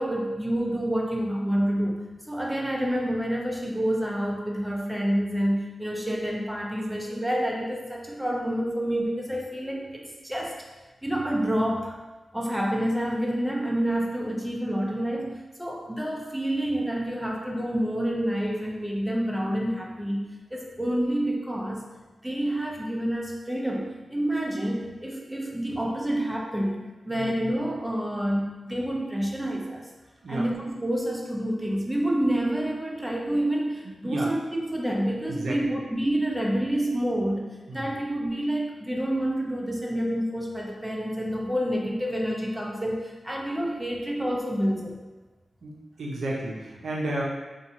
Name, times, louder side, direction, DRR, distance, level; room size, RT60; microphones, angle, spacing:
voice 1, 0.0-10.6 11.0-12.0 12.3-21.9 22.2-29.8 30.3-45.0, right 1 dB, 5° right, -1 dB, 0.5 m, -28 dB
voice 2, 33.8-34.3 35.3-35.7 37.7-37.9 45.6-47.2, right 1 dB, 85° right, -3 dB, 0.5 m, -32 dB
2.6 x 2.2 x 2.8 m, 1.2 s
cardioid pair, 40°, 0 cm